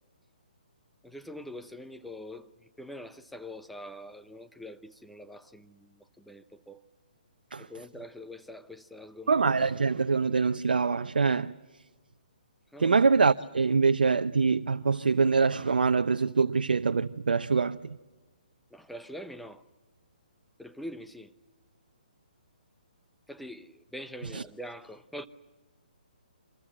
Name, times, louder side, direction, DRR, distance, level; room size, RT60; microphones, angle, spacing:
voice 1, 1.0-2.5 2.8-6.8 7.6-9.8 12.7-13.0 18.7-19.6 20.6-21.3 23.3-25.3, left 1 dB, ahead, 0.9 m, -44 dB
voice 2, 9.3-11.5 12.8-18.0 24.3-24.4, right 4 dB, 85° right, 0.8 m, -24 dB
28.5 x 26.0 x 7.4 m
hypercardioid pair, 150°, 5 cm